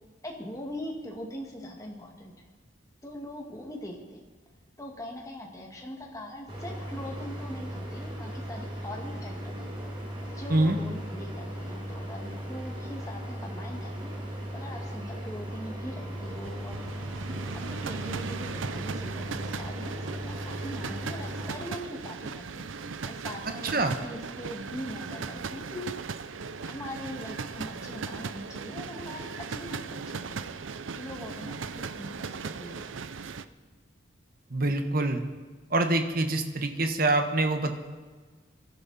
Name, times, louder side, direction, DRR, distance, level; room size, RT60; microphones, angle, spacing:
voice 1, 0.2-2.3 3.0-4.2 4.8-9.7 10.3-14.1 14.5-16.8 17.3-22.7 23.1-25.9 26.7-30.5 31.0-33.2, left 1 dB, 15° left, 0 dB, 1.9 m, -41 dB
sound 1, 6.5-21.5, equal, 25° right, 2.4 m, -37 dB
sound 2, 16.0-33.5, right 5 dB, 80° right, 0.6 m, -38 dB
voice 2, 34.5-35.2 35.7-37.7, right 2 dB, 50° right, 6 dB, 1.3 m, -25 dB
23.5 x 12.0 x 4.2 m, 1.4 s
head